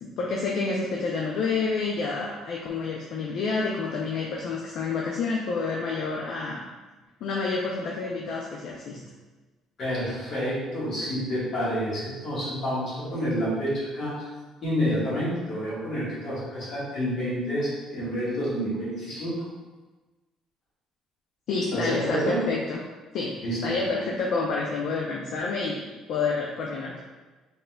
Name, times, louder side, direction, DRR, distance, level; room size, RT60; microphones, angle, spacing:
voice 1, 0.0-6.6 7.2-9.0 21.5-22.8 23.1-23.4 23.6-25.8 26.1-27.0, left 4 dB, 55° left, -2 dB, 0.4 m, -28 dB
voice 2, 9.8-14.3 14.6-19.3 21.7-22.4 23.4-23.8, equal, 40° left, -7 dB, 1.5 m, -29 dB
4.0 x 3.7 x 2.2 m, 1.2 s
cardioid pair, 165°, 0 cm